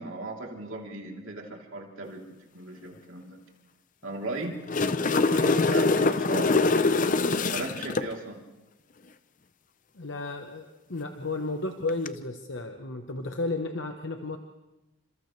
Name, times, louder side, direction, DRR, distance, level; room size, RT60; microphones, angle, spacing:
voice 1, 0.0-2.2 2.5-3.4 4.0-4.6 5.2-6.6 7.5-8.4, right 2 dB, 65° right, 0 dB, 3.3 m, -37 dB
sound 1, 4.4-8.1 11.9-12.1, left 3 dB, 35° left, 0.6 m, -23 dB
voice 2, 9.9-14.4, left 2 dB, 55° left, 5 dB, 1.0 m, -33 dB
29.5 x 26.5 x 3.3 m, 1.0 s
head